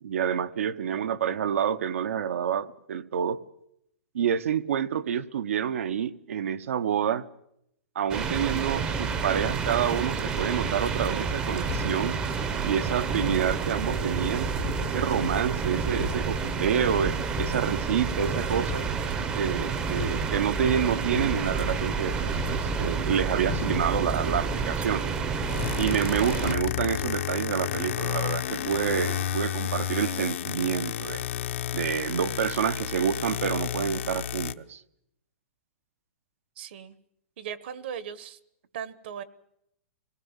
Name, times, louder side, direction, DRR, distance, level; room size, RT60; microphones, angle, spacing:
voice 1, 0.0-3.4 4.1-7.2 7.9-12.2 12.6-18.9 19.3-25.1 25.8-31.2 31.7-34.8, right 8 dB, 70° right, 1.1 m, -28 dB
sound 1, 8.1-26.5, right 5 dB, 15° right, 0.8 m, -29 dB
sound 2, 11.7-12.3 13.2-13.8 14.6-15.4 16.0-16.8 17.4-18.0 18.7-19.5 20.0-20.7 21.1-22.0 22.3-23.1 23.5-25.0 26.4-27.4, left 14 dB, 30° left, 0.8 m, -38 dB
sound 3, 25.3-34.5, left 10 dB, 60° left, 0.9 m, -32 dB
voice 2, 36.6-36.9 37.4-38.4 38.7-39.2, right 8 dB, 50° right, 1.2 m, -38 dB
25.5 x 18.5 x 7.3 m
hypercardioid pair, 175°, 7 cm